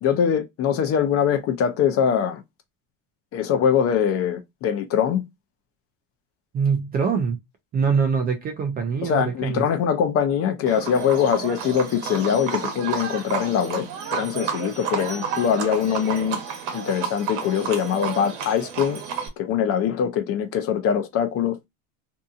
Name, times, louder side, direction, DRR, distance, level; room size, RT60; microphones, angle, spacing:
voice 1, 0.0-2.4 3.3-5.2 9.0-13.9 14.1-16.4 16.7-19.0 19.4-21.6, left 8 dB, 40° left, 0.5 m, -23 dB
voice 2, 6.5-7.4 7.7-9.6, right 5 dB, 25° right, 0.4 m, -23 dB
Livestock farm animals working animals, 10.7-19.3, right 7 dB, 90° right, 1.0 m, -31 dB
2.7 x 2.6 x 2.4 m
cardioid pair, 145°, 37 cm